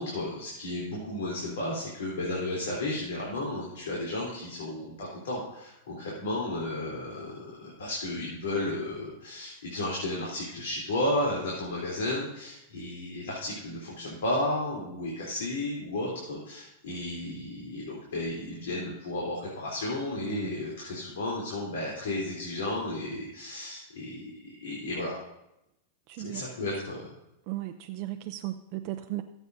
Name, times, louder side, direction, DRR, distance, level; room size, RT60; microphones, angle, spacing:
voice 1, 0.0-25.2 26.2-27.0, left 1 dB, 90° left, -4 dB, 3.4 m, -33 dB
voice 2, 20.2-20.6 26.1-26.5 27.5-29.2, right 15 dB, 45° right, 6 dB, 0.5 m, -36 dB
18.5 x 8.2 x 2.7 m, 0.87 s
supercardioid pair, 150°, 0 cm